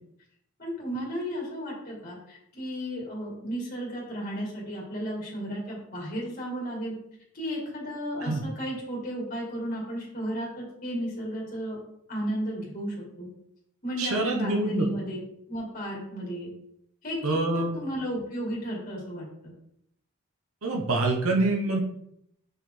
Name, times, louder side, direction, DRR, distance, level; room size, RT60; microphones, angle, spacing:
voice 1, 0.6-6.9 7.3-11.8 12.1-13.3 13.8-15.2 15.5-16.5 17.0-17.4 17.7-19.5, equal, 40° left, -4 dB, 2.3 m, -34 dB
voice 2, 14.0-14.9 17.2-17.8 20.6-21.8, right 2 dB, 75° right, 1 dB, 1.0 m, -26 dB
5.5 x 4.4 x 3.8 m, 0.75 s
head